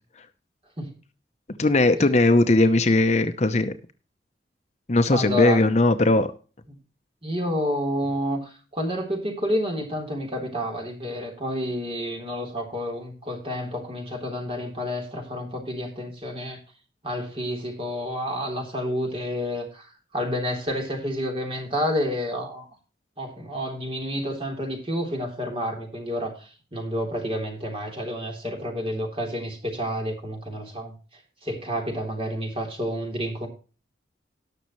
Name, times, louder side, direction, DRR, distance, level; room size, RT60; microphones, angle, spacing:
voice 1, 1.6-3.7 4.9-6.3, left 2 dB, 40° left, 9 dB, 0.7 m, -19 dB
voice 2, 5.1-5.7 7.2-16.6 17.0-22.7 23.2-30.9 31.4-33.5, equal, 30° right, 2 dB, 3.5 m, -29 dB
19.0 x 6.4 x 3.1 m, 0.35 s
head